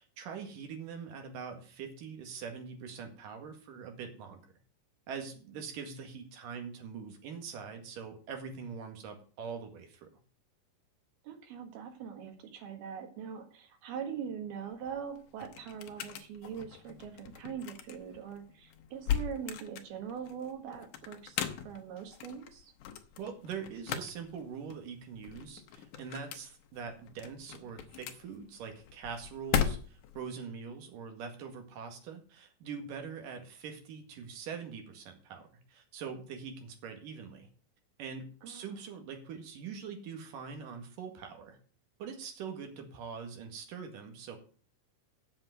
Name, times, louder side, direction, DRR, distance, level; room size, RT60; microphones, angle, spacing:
voice 1, 0.0-4.4 5.1-10.1 23.2-37.5 38.0-41.6 42.0-44.4, right 6 dB, 65° right, 4 dB, 3.4 m, -43 dB
voice 2, 11.2-22.7 38.4-38.7, right 7 dB, 80° right, 5 dB, 3.7 m, -42 dB
sound 1, 14.7-30.2, left 8 dB, 70° left, 2.3 m, -39 dB
8.1 x 7.1 x 8.0 m, 0.41 s
omnidirectional pair, 4.4 m